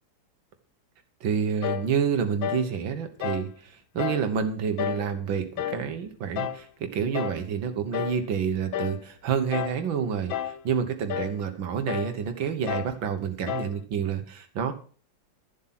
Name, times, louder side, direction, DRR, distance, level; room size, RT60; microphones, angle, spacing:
voice 1, 1.2-14.7, right 7 dB, 80° right, 7 dB, 1.9 m, -28 dB
sound 1, 1.6-1.9 2.4-2.7 3.2-3.5 4.0-4.3 4.8-5.1 5.6-5.9 6.4-6.6 7.1-7.4 7.9-8.2 8.7-9.0 9.5-9.8 10.3-10.6 11.1-11.4 11.9-12.2 12.7-13.0 13.5-13.8, left 10 dB, 85° left, 1.5 m, -31 dB
12.5 x 7.7 x 5.9 m, 0.42 s
omnidirectional pair, 2.1 m